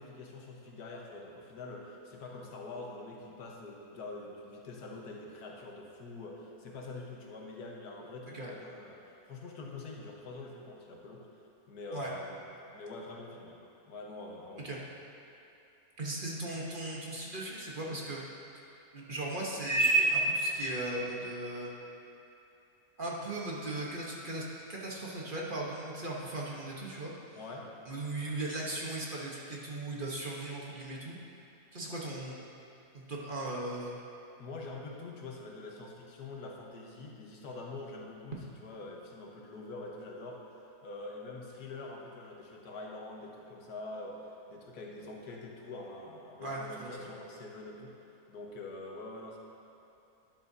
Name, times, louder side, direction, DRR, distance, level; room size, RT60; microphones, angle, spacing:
voice 1, 0.0-11.3 11.7-13.6 13.9-14.8 17.9-18.1 19.1-19.2 27.3-27.7 34.4-40.4 40.8-48.0 48.3-49.4, left 2 dB, 90° left, -1 dB, 1.7 m, -45 dB
voice 2, 16.0-18.2 18.9-21.7 23.0-27.1 27.9-31.2 31.7-32.4 32.9-34.0 46.4-47.0, right 2 dB, 35° right, -4 dB, 1.2 m, -35 dB
12.0 x 11.0 x 2.8 m, 2.8 s
omnidirectional pair, 1.6 m